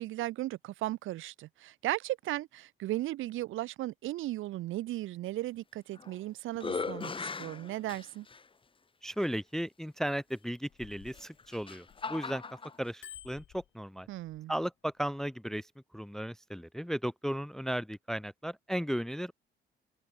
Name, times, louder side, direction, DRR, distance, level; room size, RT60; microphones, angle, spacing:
voice 1, 0.0-8.3 14.1-14.5, right 15 dB, 90° right, 2.1 m, -36 dB
sound 1, 5.7-6.2 6.5-8.4 9.2-9.3 11.1-12.8, left 4 dB, 25° left, 1.1 m, -39 dB
voice 2, 9.0-12.4 12.8-14.1 14.5-19.3, equal, ahead, 0.5 m, -35 dB
Bicycle bell, 10.4-12.3 12.7-14.4 15.0-15.2, left 11 dB, 70° left, 3.5 m, -53 dB
cardioid pair, 90°, 20 cm